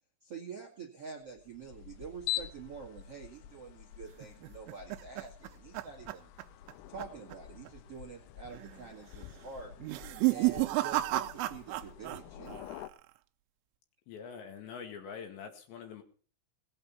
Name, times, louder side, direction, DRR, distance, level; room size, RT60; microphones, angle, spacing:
voice 1, 0.2-6.3 6.9-10.0 10.3-12.8, right 5 dB, 50° right, 2 dB, 1.9 m, -47 dB
sound 1, 1.3-12.9, left 12 dB, 85° left, 3.6 m, -45 dB
sound 2, 4.2-6.7 7.0-7.3 7.7-7.8 8.5-8.9 9.8-12.2 12.5-13.1, right 19 dB, 80° right, 3.1 m, -32 dB
voice 2, 14.1-16.0, left 6 dB, 65° left, 5 dB, 3.9 m, -44 dB
19.0 x 8.8 x 5.7 m, 0.43 s
omnidirectional pair, 6.0 m